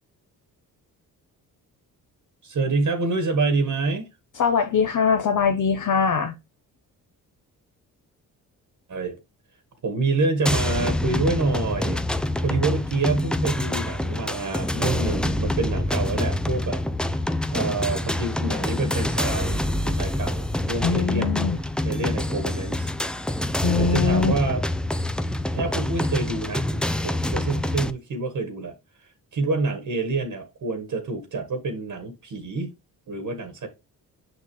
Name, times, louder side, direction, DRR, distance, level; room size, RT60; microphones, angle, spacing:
voice 1, 2.4-4.1 8.9-9.2 9.8-12.0 12.4-16.8 17.5-21.4 21.8-22.9 23.8-24.6 25.5-28.7 29.3-32.7 33.1-33.7, right 3 dB, 55° right, 1.5 m, -27 dB
voice 2, 4.4-6.3 20.8-21.6 23.6-24.3, left 6 dB, 55° left, 0.8 m, -22 dB
sound 1, 10.5-27.9, left 1 dB, ahead, 0.5 m, -26 dB
6.3 x 5.8 x 3.1 m
supercardioid pair, 65°, 38 cm